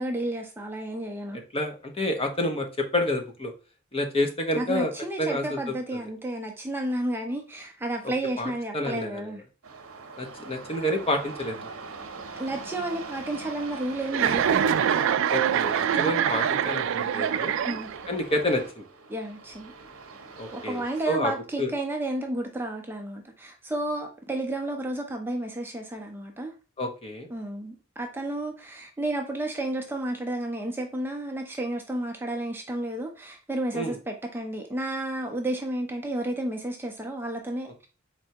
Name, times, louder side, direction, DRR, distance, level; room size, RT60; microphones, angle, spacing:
voice 1, 0.0-1.4 4.6-9.4 12.4-14.6 17.6-17.9 19.1-19.7 20.5-26.5 27.3-37.7, right 1 dB, 10° right, 0.5 m, -31 dB
voice 2, 1.5-3.5 3.9-4.9 5.2-5.6 8.0-9.4 10.2-11.7 15.3-17.5 18.1-18.9 20.4-21.3 21.6-21.7 26.8-27.3 33.7-34.0, left 1 dB, 30° left, 0.8 m, -29 dB
sound 1, 9.6-21.0, right 4 dB, 85° right, 0.8 m, -43 dB
Chuckle chortle, 14.1-18.1, right 8 dB, 65° right, 0.3 m, -24 dB
4.4 x 3.3 x 2.8 m
head